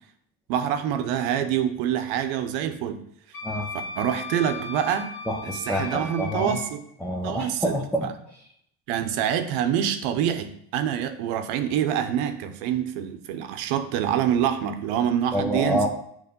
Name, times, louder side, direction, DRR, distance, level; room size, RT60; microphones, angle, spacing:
voice 1, 0.5-3.0 4.0-5.1 5.4-6.8 7.2-7.7 8.9-15.8, right 9 dB, 90° right, 8 dB, 0.8 m, -26 dB
Wind instrument woodwind instrument, 3.3-6.7, left 3 dB, 50° left, 1.1 m, -37 dB
voice 2, 5.3-6.6 7.0-8.4 15.3-15.9, equal, 5° left, -2 dB, 0.7 m, -27 dB
6.7 x 3.3 x 5.2 m, 0.69 s
cardioid pair, 120°, 46 cm